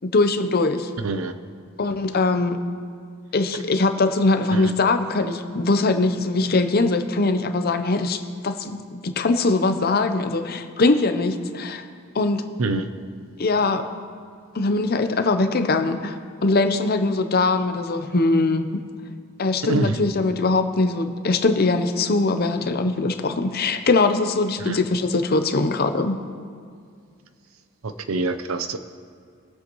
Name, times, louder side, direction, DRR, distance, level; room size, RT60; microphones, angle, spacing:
voice 1, 0.0-0.9 1.8-2.6 3.3-11.8 12.1-12.4 13.4-13.9 14.5-18.8 19.4-26.2, left 3 dB, 45° left, 8 dB, 0.7 m, -22 dB
voice 2, 1.0-1.3 4.5-4.7 12.6-12.9 19.6-20.0 24.6-24.8 27.8-28.8, right 2 dB, 75° right, 10 dB, 0.7 m, -25 dB
21.5 x 8.0 x 3.0 m, 2.2 s
head